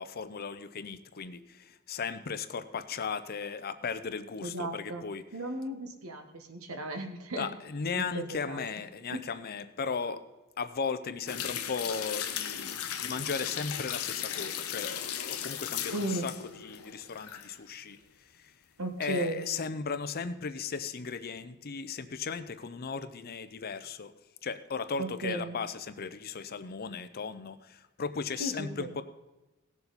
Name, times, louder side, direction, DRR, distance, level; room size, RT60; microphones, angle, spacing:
voice 1, 0.0-5.2 7.3-10.2 10.6-16.3 16.6-18.0 18.4-18.5 19.0-24.1 24.4-29.0, left 5 dB, 45° left, 12 dB, 0.6 m, -36 dB
voice 2, 4.4-5.0 5.3-7.5 8.0-8.6 9.1-9.2 15.9-16.3 18.8-19.4 25.0-25.6 28.4-28.9, right 1 dB, 75° right, 6 dB, 1.3 m, -35 dB
sound 1, 11.3-17.5 17.9-18.0, left 9 dB, 80° left, 0.8 m, -36 dB
17.5 x 7.0 x 4.1 m, 1.0 s
head